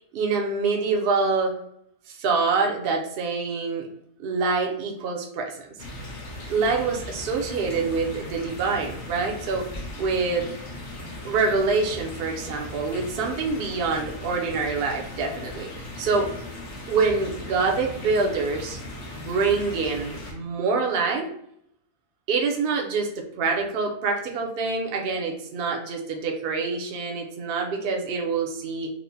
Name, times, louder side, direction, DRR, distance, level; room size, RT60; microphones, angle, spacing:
voice 1, 0.1-1.5 2.1-3.9 4.2-5.7 6.5-9.6 10.0-10.5 11.2-15.7 16.0-16.3 16.9-18.8 19.1-21.3 22.3-28.9, right 4 dB, 60° right, 1 dB, 0.6 m, -25 dB
sound 1, 5.8-20.3, left 1 dB, 45° left, 0.7 m, -38 dB
4.4 x 2.0 x 2.6 m, 0.74 s
omnidirectional pair, 1.4 m